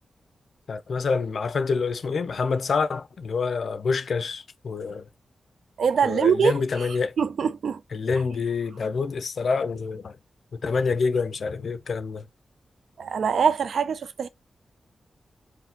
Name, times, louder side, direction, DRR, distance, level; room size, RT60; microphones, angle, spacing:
voice 1, 0.7-5.0 6.0-7.1 7.9-10.1 10.5-12.2, left 4 dB, 65° left, 0.7 m, -27 dB
voice 2, 5.8-7.8 13.0-14.3, right 6 dB, 80° right, 0.7 m, -24 dB
4.7 x 2.3 x 3.8 m
wide cardioid pair, 115°, 0 cm